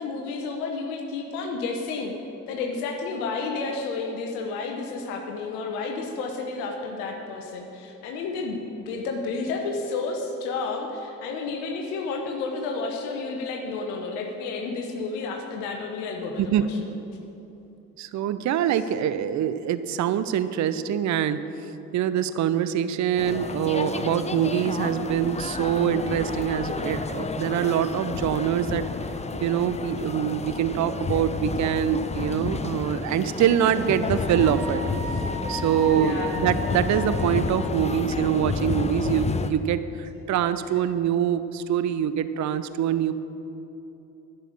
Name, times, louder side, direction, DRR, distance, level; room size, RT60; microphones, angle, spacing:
voice 1, 0.0-2.1 2.5-8.6 8.9-16.8 35.9-36.3, left 4 dB, 70° left, 2 dB, 1.1 m, -31 dB
voice 2, 16.4-16.9 18.0-21.4 21.9-28.9 29.4-34.8 35.5-43.1, right 9 dB, 40° right, 13 dB, 0.6 m, -24 dB
sound 1, 23.2-39.5, left 4 dB, 15° left, 0.6 m, -30 dB
Wind instrument woodwind instrument, 34.3-37.8, right 2 dB, 75° right, 1.8 m, -36 dB
11.5 x 6.7 x 7.4 m, 2.9 s
figure-of-eight pair, 40°, 46 cm